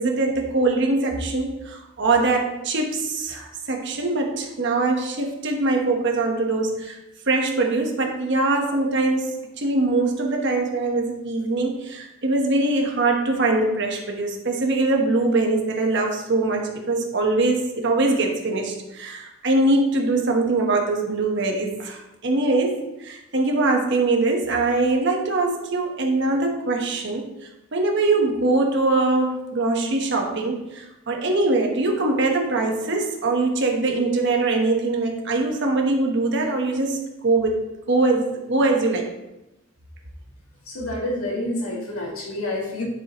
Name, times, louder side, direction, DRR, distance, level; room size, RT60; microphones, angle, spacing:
voice 1, 0.0-7.0 7.3-27.3 27.7-37.6 37.9-39.1, right 2 dB, 55° right, 1 dB, 1.1 m, -22 dB
voice 2, 40.7-42.8, left 1 dB, 85° left, -2 dB, 1.9 m, -28 dB
10.0 x 4.8 x 3.0 m, 0.95 s
head